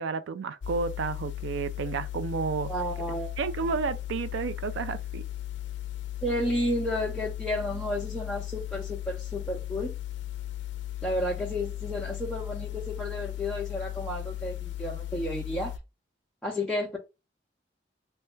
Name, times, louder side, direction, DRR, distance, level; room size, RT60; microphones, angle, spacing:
voice 1, 0.0-2.7 3.4-5.2, right 5 dB, 85° right, 0.3 m, -31 dB
sound 1, 0.6-15.8, left 13 dB, 75° left, 0.4 m, -36 dB
voice 2, 2.7-3.3 3.6-3.8 6.2-9.9 11.0-15.7 16.4-17.0, left 1 dB, ahead, 0.4 m, -32 dB
3.2 x 2.1 x 3.1 m
head